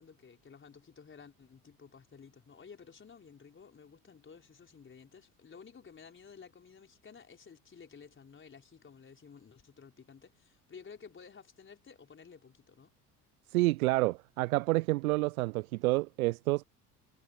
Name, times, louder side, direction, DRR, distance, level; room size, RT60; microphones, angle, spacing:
voice 1, 0.0-12.9, left 6 dB, 25° left, 4.7 m, -54 dB
voice 2, 13.5-16.6, right 21 dB, 60° right, 1.0 m, -29 dB
figure-of-eight pair, 65°, 47 cm